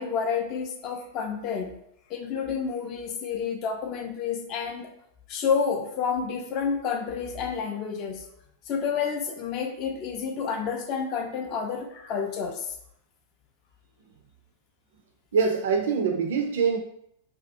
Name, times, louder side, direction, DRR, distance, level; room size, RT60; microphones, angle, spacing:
voice 1, 0.0-1.8 2.1-4.9 5.3-8.3 8.7-12.7, left 6 dB, 40° left, 4 dB, 0.4 m, -29 dB
voice 2, 15.3-16.8, right 5 dB, 60° right, 5 dB, 0.3 m, -24 dB
2.5 x 2.2 x 2.5 m, 0.74 s
figure-of-eight pair, 90°, 0 cm